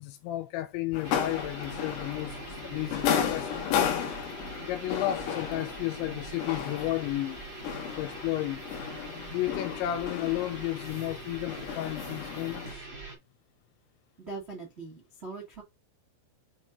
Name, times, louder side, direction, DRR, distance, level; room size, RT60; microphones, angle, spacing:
voice 1, 0.0-3.6 4.6-7.4 8.0-8.6 9.3-12.9, left 15 dB, 85° left, 2.7 m, -33 dB
sound 1, 0.9-12.7, left 8 dB, 65° left, 3.5 m, -34 dB
sound 2, 1.0-13.2, right 3 dB, 20° right, 3.6 m, -43 dB
voice 2, 14.2-15.6, right 3 dB, 50° right, 0.7 m, -41 dB
7.1 x 5.6 x 2.7 m
omnidirectional pair, 5.7 m